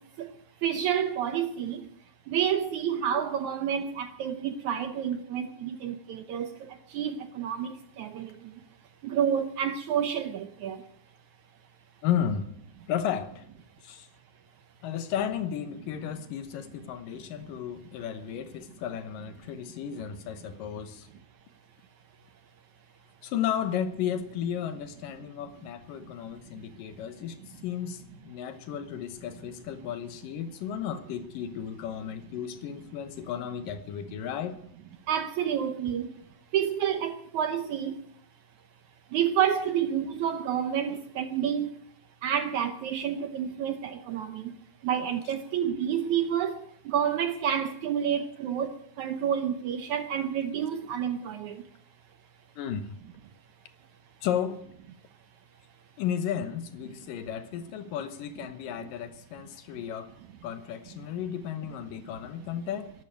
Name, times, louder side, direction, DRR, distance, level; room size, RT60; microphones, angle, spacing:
voice 1, 0.6-1.8 2.3-6.5 6.9-8.3 9.0-10.8 35.1-36.1 36.5-38.0 39.1-41.7 42.2-44.5 44.8-46.6 46.9-51.6, right 9 dB, 70° right, 1.9 m, -29 dB
voice 2, 12.0-12.5 12.9-13.5 13.8-14.1 14.8-21.1 23.2-34.6 52.6-53.0 54.2-54.6 56.0-60.1 60.4-62.9, left 9 dB, 75° left, 2.6 m, -33 dB
12.5 x 12.0 x 9.1 m
omnidirectional pair, 4.2 m